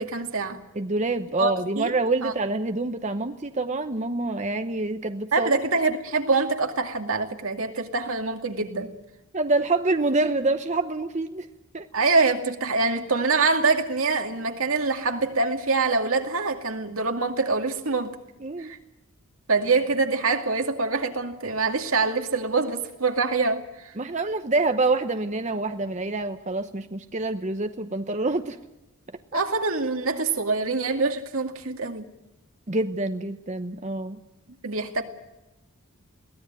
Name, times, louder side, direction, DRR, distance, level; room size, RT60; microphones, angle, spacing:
voice 1, 0.0-0.6 1.4-1.9 2.2-2.3 5.3-8.9 11.9-18.2 18.6-18.8 19.5-23.9 29.3-32.1 34.6-35.0, right 3 dB, 75° right, 2.3 m, -25 dB
voice 2, 0.7-5.5 9.3-11.5 11.7-11.9 18.4-18.7 24.0-28.6 29.3-29.4 32.7-34.2, right 2 dB, 35° right, 0.9 m, -26 dB
23.0 x 17.5 x 9.1 m
head